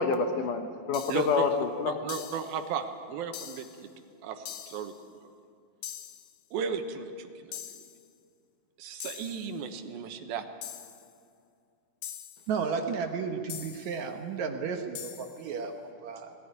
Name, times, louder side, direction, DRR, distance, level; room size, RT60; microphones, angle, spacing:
voice 1, 0.0-2.0, left 5 dB, 70° left, 6 dB, 2.4 m, -28 dB
sound 1, 0.9-1.4 2.1-2.6 3.3-3.8 4.5-5.0 5.8-6.4 7.5-8.0 9.0-9.5 10.6-11.1 12.0-12.5 13.5-14.0 14.9-15.5, left 10 dB, 85° left, 1.4 m, -43 dB
voice 2, 1.1-1.4 1.9-3.7 4.2-4.9 5.2-5.3 6.5-7.6 8.8-10.4, right 6 dB, 90° right, 7 dB, 3.0 m, -35 dB
voice 3, 12.5-16.3, right 5 dB, 65° right, 5 dB, 2.0 m, -33 dB
20.5 x 14.0 x 9.9 m, 2.4 s
omnidirectional pair, 4.1 m